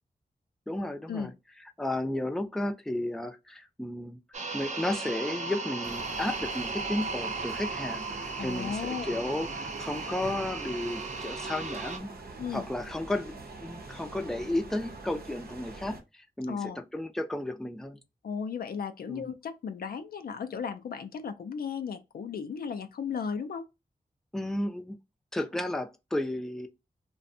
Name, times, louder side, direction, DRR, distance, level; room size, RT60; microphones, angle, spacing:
voice 1, 0.7-1.3 1.8-4.2 4.5-12.1 12.5-18.0 19.1-19.3 24.3-25.0 25.3-26.7, left 1 dB, 5° left, 0.4 m, -33 dB
sound 1, 4.3-12.0, right 4 dB, 50° right, 0.6 m, -36 dB
sound 2, 5.8-16.0, right 3 dB, 80° right, 0.7 m, -44 dB
voice 2, 8.4-9.2 12.4-12.7 16.5-16.8 18.2-23.7, left 6 dB, 75° left, 0.4 m, -35 dB
2.6 x 2.1 x 2.5 m
cardioid pair, 60°, 16 cm